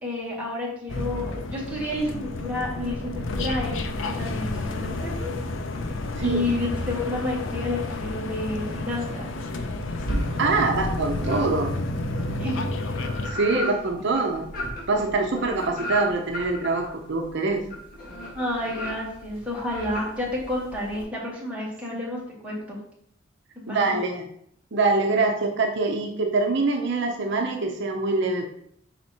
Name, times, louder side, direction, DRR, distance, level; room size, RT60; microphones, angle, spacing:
voice 1, 0.0-5.3 6.2-9.3 12.4-13.0 13.5-13.7 14.0-14.2 18.3-22.2 22.4-22.8 23.7-24.0, left 1 dB, 5° right, -5 dB, 1.8 m, -30 dB
sound 1, 0.9-13.3, left 2 dB, 75° left, 0.6 m, -30 dB
sound 2, 10.0-10.8 11.2-21.0, equal, 45° left, 1.9 m, -35 dB
voice 2, 10.4-11.7 13.3-14.5 14.9-17.6 21.9-22.0 23.7-24.3 24.7-28.5, right 3 dB, 65° right, 3 dB, 0.7 m, -24 dB
5.7 x 4.2 x 4.3 m, 0.67 s
head